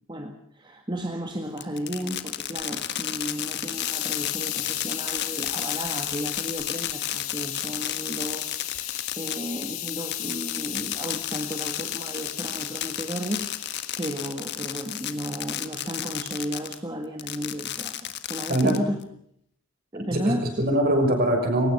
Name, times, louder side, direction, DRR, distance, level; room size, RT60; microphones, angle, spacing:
voice 1, 0.1-19.0 19.9-20.6, equal, 20° right, 4 dB, 1.8 m, -33 dB
Fireworks, 1.6-16.8 17.2-19.0, left 11 dB, 50° left, 1.6 m, -32 dB
Hiss, 2.6-14.3 14.9-15.3, left 14 dB, 75° left, 1.9 m, -35 dB
voice 2, 18.5-18.8 20.1-21.7, right 1 dB, 45° right, 4 dB, 6.4 m, -22 dB
22.5 x 19.0 x 6.7 m, 0.68 s
head